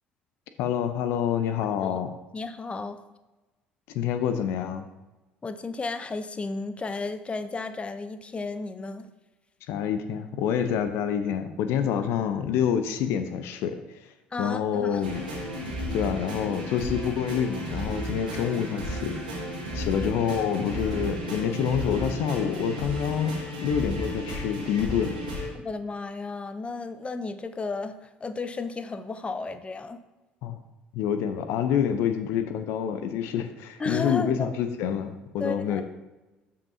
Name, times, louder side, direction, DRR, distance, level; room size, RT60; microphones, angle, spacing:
voice 1, 0.6-2.1 3.9-4.9 9.7-14.1 14.4-15.2 15.9-19.2 19.7-25.2 30.4-30.6 30.9-35.8, left 8 dB, 60° left, 9 dB, 0.6 m, -27 dB
voice 2, 2.3-3.0 5.4-9.1 14.3-15.0 25.6-30.0 33.8-34.5 35.4-35.8, left 3 dB, 25° left, 11 dB, 0.7 m, -33 dB
sound 1, 15.0-18.3 18.5-18.6, left 3 dB, 70° right, 2.5 m, -49 dB
sound 2, 15.0-25.5, equal, 90° right, 2.0 m, -33 dB
13.0 x 5.6 x 2.8 m, 1.1 s
figure-of-eight pair, 55°, 5 cm